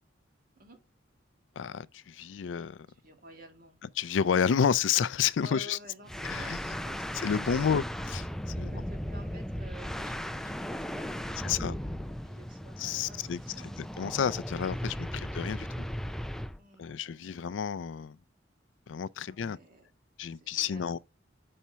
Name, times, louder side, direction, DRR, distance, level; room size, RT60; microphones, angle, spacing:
voice 1, 1.6-2.9 4.0-5.8 6.2-6.6 7.2-8.3 8.6-8.8 11.4-11.8 12.8-13.4 13.8-15.9 16.8-18.2 18.9-19.6 20.2-21.0, left 7 dB, 90° left, 0.4 m, -30 dB
voice 2, 2.9-3.8 5.4-7.0 8.5-13.7 14.9-15.2 16.6-17.4 19.2-19.9 20.3-21.0, right 1 dB, 50° right, 1.9 m, -53 dB
sound 1, 6.1-16.6, equal, ahead, 0.3 m, -37 dB
5.6 x 4.3 x 6.1 m
head